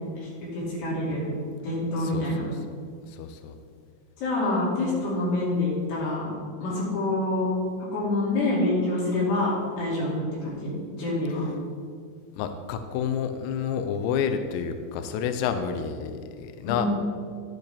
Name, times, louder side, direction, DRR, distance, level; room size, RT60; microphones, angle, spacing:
voice 1, 0.2-1.3 1.6-2.4 4.2-6.3 6.6-7.5 7.8-11.5 16.6-16.9, left 2 dB, 60° left, -7 dB, 4.5 m, -27 dB
voice 2, 2.0-2.5 3.1-3.6 12.4-16.9, left 7 dB, 85° left, 8 dB, 2.5 m, -29 dB
10.5 x 8.2 x 3.4 m, 2.2 s
omnidirectional pair, 5.6 m